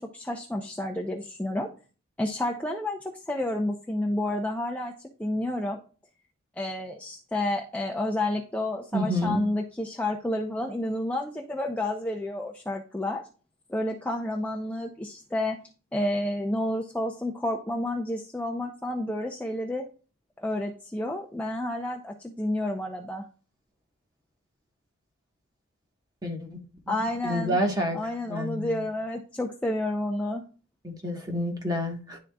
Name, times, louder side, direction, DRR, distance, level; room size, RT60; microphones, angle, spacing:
voice 1, 0.0-1.7 2.2-3.0 3.3-4.9 5.2-5.8 6.6-13.2 13.7-15.6 15.9-19.9 20.4-23.2 26.9-27.6 27.9-30.4, left 1 dB, 5° left, 0.5 m, -30 dB
voice 2, 8.9-9.4 26.2-26.6 26.9-27.0 27.2-28.0 28.3-28.8 30.8-32.2, equal, 20° right, 1.3 m, -29 dB
11.0 x 3.7 x 2.3 m
head